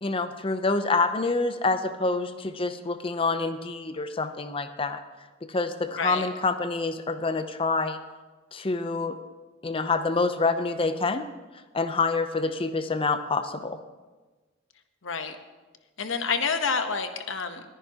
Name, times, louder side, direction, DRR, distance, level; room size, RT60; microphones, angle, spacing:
voice 1, 0.0-5.0 5.4-8.0 8.5-9.2 9.6-11.3 11.7-13.8, left 3 dB, 25° left, 9 dB, 0.6 m, -27 dB
voice 2, 6.0-6.3 15.0-15.4 16.0-17.6, left 5 dB, 70° left, 8 dB, 1.0 m, -28 dB
21.0 x 10.0 x 2.9 m, 1.3 s
head